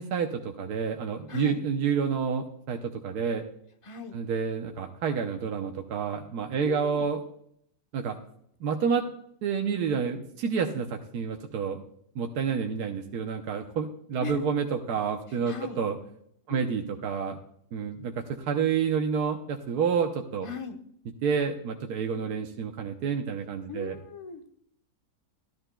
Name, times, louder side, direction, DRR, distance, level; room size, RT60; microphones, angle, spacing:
voice 1, 0.0-3.4 4.1-7.2 7.9-8.2 8.6-9.0 9.4-11.8 12.1-16.0 16.5-17.4 17.7-20.5 21.2-24.0, right 6 dB, 85° right, 3 dB, 1.3 m, -29 dB
voice 2, 3.8-4.2 6.6-7.1 14.2-14.4 15.3-15.8 16.5-16.7 20.4-20.8 23.7-24.4, left 7 dB, 25° left, 6 dB, 0.7 m, -38 dB
13.0 x 12.5 x 2.2 m, 0.69 s
omnidirectional pair, 1.6 m